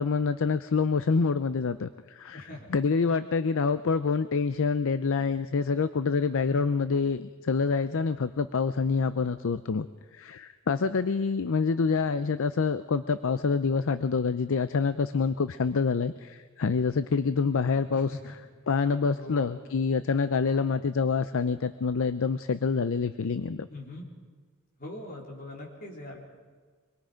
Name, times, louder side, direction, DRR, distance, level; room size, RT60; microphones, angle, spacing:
voice 1, 0.0-2.4 2.7-9.9 10.1-18.2 18.7-23.7, left 5 dB, 60° left, 12 dB, 0.5 m, -26 dB
voice 2, 2.3-2.7 17.9-18.3 19.1-19.5 23.7-24.0 24.8-26.2, left 2 dB, 40° left, -2 dB, 4.1 m, -42 dB
25.0 x 21.5 x 5.1 m, 1.5 s
head